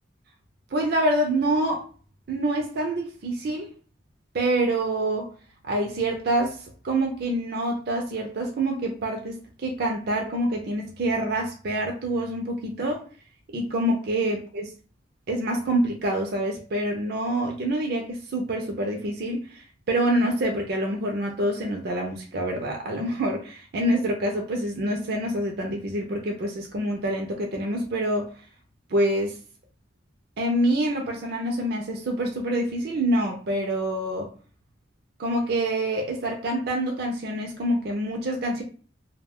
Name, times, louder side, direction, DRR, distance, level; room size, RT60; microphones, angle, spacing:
voice 1, 0.7-1.9 2.3-3.7 4.3-5.3 5.6-13.0 13.5-14.7 15.3-28.3 28.9-29.4 30.4-34.3 35.2-38.6, right 1 dB, 55° right, 1 dB, 0.5 m, -26 dB
2.3 x 2.2 x 3.4 m, 0.39 s
head